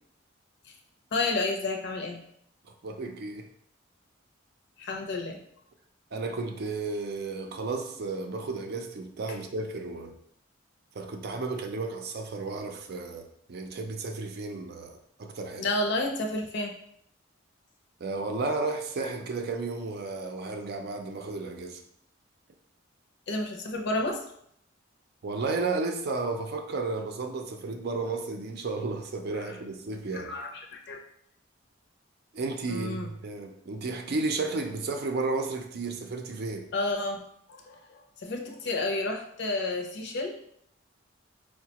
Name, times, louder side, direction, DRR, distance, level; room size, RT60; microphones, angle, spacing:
voice 1, 1.1-2.2 4.8-5.4 9.3-9.4 15.6-16.7 23.3-24.2 29.3-29.6 30.1-31.0 32.7-33.1 36.7-37.2 37.5-40.4, left 2 dB, 60° left, 2 dB, 0.6 m, -31 dB
voice 2, 2.7-3.5 6.1-10.1 10.9-15.7 18.0-21.8 25.2-30.3 32.3-36.7, right 3 dB, 55° right, 5 dB, 0.4 m, -33 dB
4.6 x 2.1 x 2.9 m, 0.70 s
head